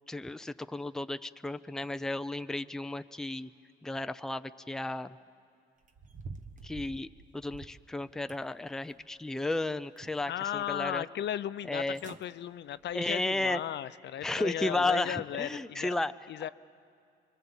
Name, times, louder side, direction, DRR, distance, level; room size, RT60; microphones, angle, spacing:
voice 1, 0.1-3.5 3.8-5.2 6.6-7.1 7.3-11.0 11.7-12.0 12.9-13.6 14.2-16.1, left 2 dB, ahead, 10 dB, 0.5 m, -33 dB
sound 1, 5.8-7.9 8.3-9.1 9.5-10.4 10.8-10.9 11.6-11.7 11.9-12.3 12.7-13.0 13.5-13.6, right 4 dB, 40° right, 1.3 m, -48 dB
voice 2, 10.3-16.0 16.3-16.5, left 11 dB, 60° left, 15 dB, 0.6 m, -36 dB
26.0 x 23.0 x 7.2 m, 2.4 s
cardioid pair, 90°, 20 cm